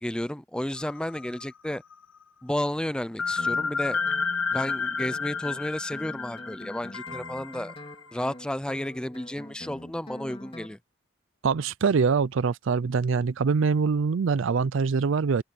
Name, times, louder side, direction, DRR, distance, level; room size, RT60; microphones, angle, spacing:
voice 1, 0.0-1.8 2.4-4.0 4.5-7.7 8.1-10.8, left 1 dB, 5° left, 0.4 m, -32 dB
sound 1, 0.8-1.9 3.2-8.1, left 5 dB, 80° left, 1.3 m, -31 dB
Guitar, 3.4-10.8, left 1 dB, 25° left, 2.2 m, -45 dB
voice 2, 11.4-15.4, right 5 dB, 70° right, 0.4 m, -24 dB
open air
head